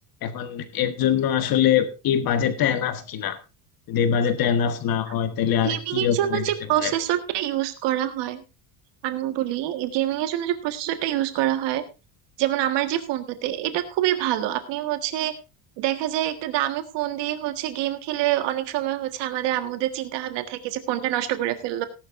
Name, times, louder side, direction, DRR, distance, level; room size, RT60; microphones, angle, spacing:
voice 1, 0.2-3.4 3.9-6.4 6.8-6.9, left 9 dB, 50° left, 9 dB, 1.5 m, -23 dB
voice 2, 5.6-8.4 9.0-11.8 12.4-15.3 15.8-21.8, right 13 dB, 65° right, 9 dB, 1.7 m, -26 dB
18.0 x 11.5 x 2.6 m, 0.29 s
cardioid pair, 160°, 45 cm